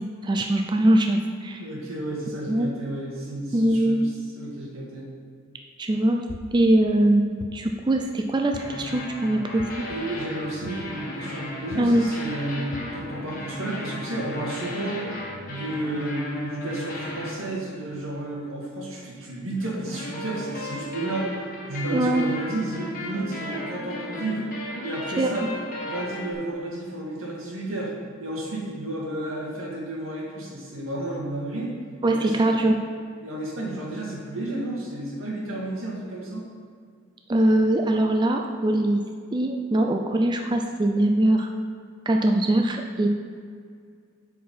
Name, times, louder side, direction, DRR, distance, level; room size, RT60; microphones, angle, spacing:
voice 1, 0.0-1.6 2.5-2.7 3.5-4.0 5.8-6.2 6.5-9.8 11.8-12.1 21.9-22.2 25.2-25.3 32.0-32.8 37.3-39.0 39.3-41.5 42.1-43.1, right 1 dB, 20° right, 3 dB, 0.4 m, -22 dB
voice 2, 1.6-4.1 4.4-5.1 6.8-6.9 9.9-15.0 15.5-21.3 21.7-24.5 24.8-25.5 25.9-27.9 28.2-31.7 32.0-32.5 33.2-36.5, right 1 dB, 85° right, -3 dB, 1.9 m, -32 dB
sound 1, 6.3-6.7 7.4-7.9 8.5-9.0 9.6-10.0 10.6-11.1 11.7-12.0 12.7-13.1, left 4 dB, 80° left, 0.4 m, -40 dB
sound 2, 8.5-18.1 19.6-26.3, left 1 dB, 40° left, 1.4 m, -35 dB
8.2 x 4.8 x 5.5 m, 2.2 s
head